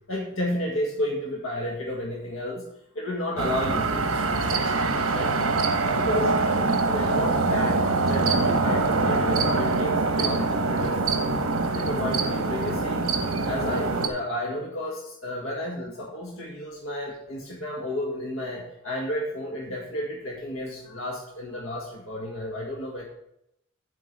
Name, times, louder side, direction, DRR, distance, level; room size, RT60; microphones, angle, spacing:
voice 1, 0.1-2.6 2.9-4.8 5.1-5.3 5.8-11.2 11.7-13.1 13.4-23.0, left 1 dB, 70° left, -2 dB, 1.6 m, -32 dB
sound 1, 3.4-14.1, right 3 dB, 85° right, 1.0 m, -24 dB
7.7 x 4.7 x 6.6 m, 0.79 s
head